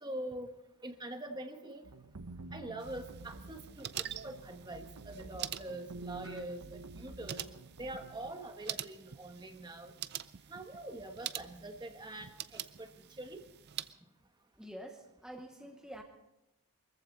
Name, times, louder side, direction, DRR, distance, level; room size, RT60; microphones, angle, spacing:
voice 1, 0.0-1.8 2.5-7.5 7.8-9.9 10.5-12.9 13.2-13.4, right 1 dB, 20° right, 6 dB, 1.1 m, -44 dB
sound 1, 1.8-8.3, right 2 dB, 90° right, 0.9 m, -49 dB
sound 2, 2.8-13.9, right 11 dB, 45° right, 0.5 m, -45 dB
voice 2, 14.6-16.0, equal, 5° right, 3 dB, 0.9 m, -48 dB
23.5 x 14.5 x 4.0 m, 0.90 s
head